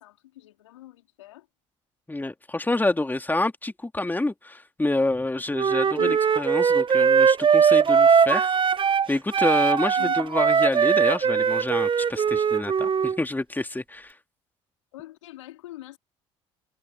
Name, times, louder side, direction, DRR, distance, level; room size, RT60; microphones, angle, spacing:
voice 1, 0.0-1.5 6.0-6.2 10.0-10.2 14.9-16.0, left 16 dB, 85° left, 3.4 m, -42 dB
voice 2, 2.1-8.6 9.1-14.2, left 2 dB, 10° left, 2.7 m, -27 dB
Wind instrument woodwind instrument, 5.5-9.1 9.3-13.2, right 6 dB, 35° right, 1.0 m, -20 dB
hypercardioid pair, 60°, 15 cm